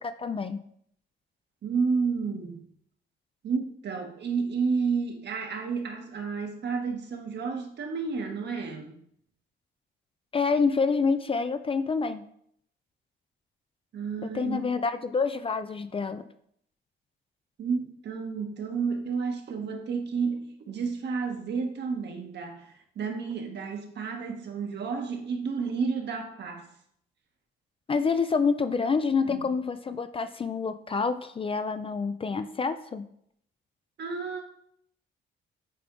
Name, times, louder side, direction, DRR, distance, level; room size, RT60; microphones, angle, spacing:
voice 1, 0.0-0.6 10.3-12.3 14.2-16.3 27.9-33.1, left 5 dB, 30° left, 0.4 m, -27 dB
voice 2, 1.6-2.6 3.4-9.0 13.9-14.7 17.6-26.7 29.2-29.4 34.0-34.4, right 5 dB, 60° right, 1.2 m, -31 dB
8.4 x 3.5 x 3.7 m
cardioid pair, 90°, 20 cm